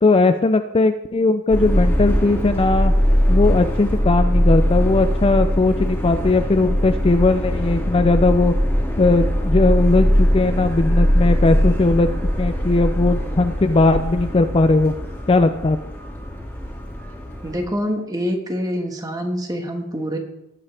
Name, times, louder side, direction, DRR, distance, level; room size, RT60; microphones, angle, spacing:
voice 1, 0.0-2.9 3.3-8.5 9.0-12.1 12.4-14.9 15.3-15.8, left 3 dB, 25° left, 9 dB, 0.4 m, -18 dB
Subway metro underground, 1.5-17.6, equal, 10° left, 2.4 m, -21 dB
voice 2, 17.4-20.2, equal, 15° right, 3 dB, 1.5 m, -25 dB
18.5 x 8.4 x 3.4 m, 0.87 s
head